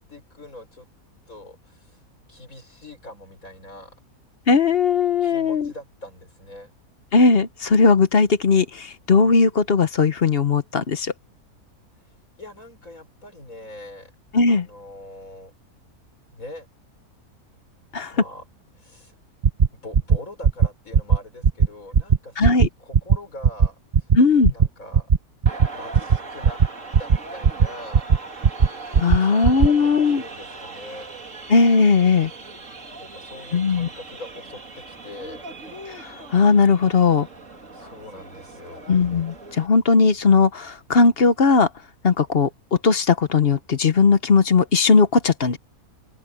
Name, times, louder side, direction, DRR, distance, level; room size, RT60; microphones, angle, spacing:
voice 1, 0.1-0.9 1.3-2.0 2.3-4.0 5.2-6.7 12.4-14.1 14.5-15.5 16.3-16.7 18.1-18.4 18.7-19.2 19.7-24.2 24.5-25.1 25.7-26.6 27.0-28.1 29.2-31.1 33.0-35.4 37.7-38.8, left 1 dB, 60° left, 6.3 m, -42 dB
voice 2, 4.5-5.7 7.1-11.1 14.3-14.7 17.9-18.1 22.4-22.7 24.1-24.5 29.0-30.2 31.5-32.3 33.5-33.9 35.9-37.3 38.9-41.7 42.0-42.5 42.8-45.6, left 4 dB, 45° left, 1.0 m, -18 dB
sound 1, 19.4-19.7 19.9-20.2 20.4-20.7 20.9-21.2 21.4-21.7 21.9-22.2 22.4-22.7 22.9-23.2 23.4-23.7 23.9-24.2 24.4-24.7 24.9-25.2 25.4-25.7 25.9-26.2 26.4-26.7 26.9-27.2 27.4-27.7 27.9-28.2 28.4-28.7 28.9-29.2 29.4-29.7, right 6 dB, 40° right, 0.7 m, -16 dB
sound 2, 25.5-39.7, right 3 dB, 55° right, 3.1 m, -39 dB
open air
omnidirectional pair, 1.6 m